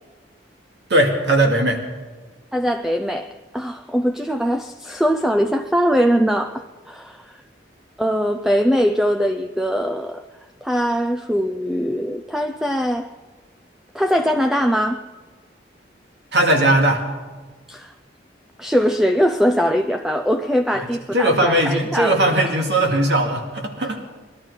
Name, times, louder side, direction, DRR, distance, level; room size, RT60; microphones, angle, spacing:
voice 1, 0.9-1.8 16.3-17.0 20.7-24.0, right 1 dB, 75° right, 2 dB, 2.1 m, -19 dB
voice 2, 2.5-7.3 8.0-10.2 10.6-13.1 13.9-15.0 17.7-17.9 18.6-22.2, equal, ahead, 5 dB, 0.4 m, -21 dB
21.0 x 12.0 x 4.8 m, 1.3 s
head